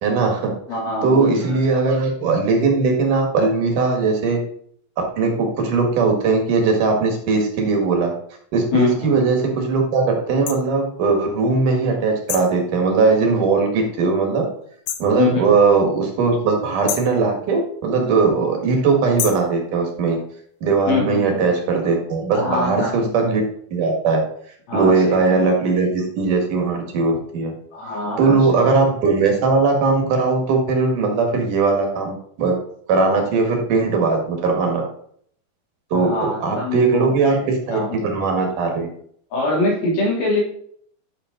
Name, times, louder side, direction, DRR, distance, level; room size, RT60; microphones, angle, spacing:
voice 1, 0.0-0.5 1.0-4.4 5.0-8.1 8.5-14.5 15.0-20.2 20.6-23.4 23.7-24.2 24.7-27.5 28.2-32.6 32.9-34.8 35.9-38.9, right 4 dB, 65° right, 2 dB, 3.3 m, -19 dB
voice 2, 0.7-1.7 8.7-9.1 15.2-15.5 20.9-21.4 22.3-23.1 24.7-25.4 27.7-28.4 35.9-38.0 39.3-40.4, left 3 dB, 90° left, -3 dB, 5.1 m, -24 dB
sound 1, 10.5-10.6 12.3-12.6 14.9-15.1 16.9-17.2 19.2-19.5, left 10 dB, 75° left, 2.3 m, -27 dB
12.5 x 6.5 x 3.8 m, 0.63 s
omnidirectional pair, 4.1 m